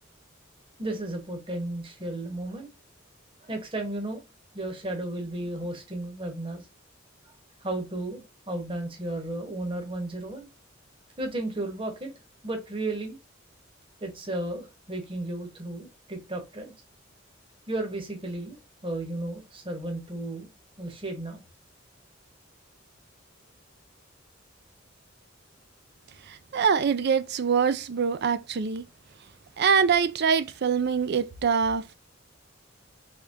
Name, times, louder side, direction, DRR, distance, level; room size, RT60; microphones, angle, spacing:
voice 1, 0.8-2.7 3.4-4.2 4.5-6.6 7.2-7.3 7.6-10.5 11.2-12.1 12.4-13.2 14.0-16.7 17.7-18.6 18.8-20.5 20.8-21.4, right 2 dB, 25° right, 1.0 m, -34 dB
voice 2, 26.3-28.8 29.6-31.9, right 6 dB, 55° right, 0.4 m, -24 dB
3.6 x 3.4 x 2.6 m
head